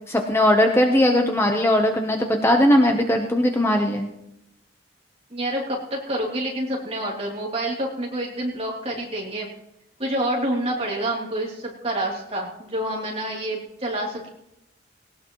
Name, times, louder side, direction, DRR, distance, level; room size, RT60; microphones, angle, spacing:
voice 1, 0.1-4.1, left 1 dB, 15° left, 3 dB, 0.9 m, -19 dB
voice 2, 5.3-9.5 10.0-14.3, right 1 dB, 35° right, -2 dB, 3.1 m, -28 dB
18.5 x 18.0 x 3.1 m, 0.84 s
head